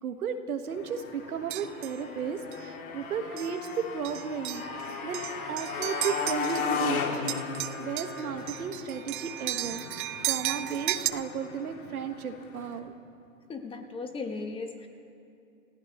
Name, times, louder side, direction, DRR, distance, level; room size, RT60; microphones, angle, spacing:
voice 1, 0.0-4.6 5.0-7.3 7.8-9.8 10.2-12.9, right 7 dB, 85° right, 7 dB, 1.5 m, -34 dB
Motorcycle, 0.7-12.8, left 6 dB, 70° left, 2.4 m, -37 dB
sound 1, 1.5-2.0 2.5-2.7 3.4-3.7 4.0-6.9 7.1-11.1, right 15 dB, 35° right, 0.4 m, -35 dB
voice 2, 13.5-14.9, left 4 dB, 10° left, 6 dB, 1.0 m, -36 dB
30.0 x 15.0 x 3.1 m, 2.6 s
hypercardioid pair, 130°, 43 cm